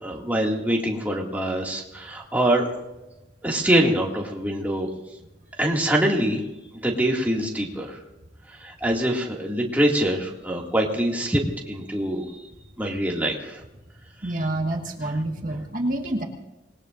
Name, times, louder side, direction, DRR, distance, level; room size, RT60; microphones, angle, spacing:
voice 1, 0.0-2.7 3.4-4.9 5.6-6.4 6.7-8.0 8.5-11.4 11.7-12.3 12.8-13.6, right 1 dB, 10° right, -2 dB, 2.3 m, -24 dB
voice 2, 14.2-16.2, right 1 dB, 45° right, 1 dB, 1.7 m, -27 dB
26.5 x 20.5 x 2.6 m, 0.99 s
head